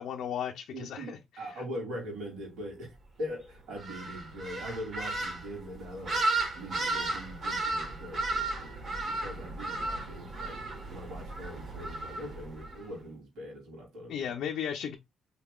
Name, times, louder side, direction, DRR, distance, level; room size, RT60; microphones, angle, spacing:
voice 1, 0.0-1.6 14.1-15.0, left 8 dB, 75° left, 0.5 m, -36 dB
voice 2, 0.7-10.6 10.9-14.3, equal, 85° right, 2.6 m, -42 dB
sound 1, 3.8-12.8, right 2 dB, 55° right, 2.0 m, -34 dB
4.0 x 3.6 x 2.3 m
cardioid pair, 90°, 0 cm